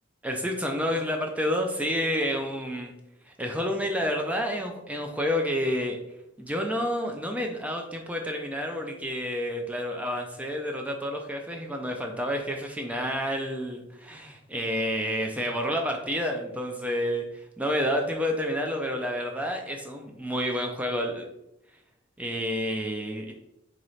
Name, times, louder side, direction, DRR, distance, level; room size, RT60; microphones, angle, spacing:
voice 1, 0.2-2.9 3.3-6.0 6.4-21.3 22.2-23.3, equal, 5° right, 2 dB, 0.3 m, -29 dB
3.1 x 2.9 x 3.9 m, 0.86 s
head